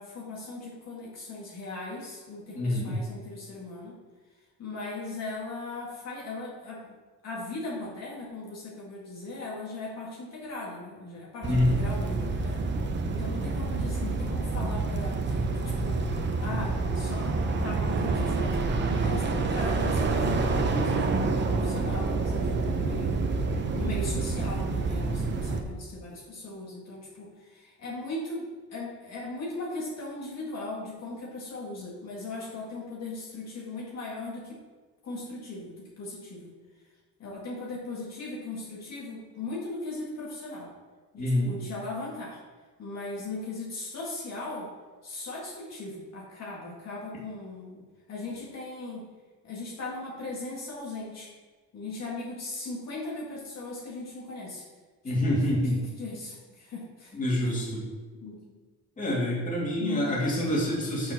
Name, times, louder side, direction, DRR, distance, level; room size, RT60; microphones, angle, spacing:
voice 1, 0.0-4.0 4.6-7.0 7.2-12.7 13.1-15.5 15.8-16.1 16.4-23.2 23.6-34.6 35.0-36.8 37.2-40.7 41.1-42.4 42.8-44.7 45.0-49.0 49.4-51.3 51.7-54.7 55.0-57.1 57.4-57.5 58.1-58.5 59.8-60.1, left 2 dB, 55° left, -4 dB, 2.0 m, -38 dB
voice 2, 2.5-2.9 11.4-11.8 41.2-41.5 55.0-55.7 57.1-57.8 59.0-61.1, left 1 dB, 25° left, -5 dB, 2.6 m, -26 dB
sound 1, 11.4-25.6, right 3 dB, 35° right, 0.9 m, -28 dB
7.0 x 6.2 x 5.9 m, 1.4 s
cardioid pair, 165°, 32 cm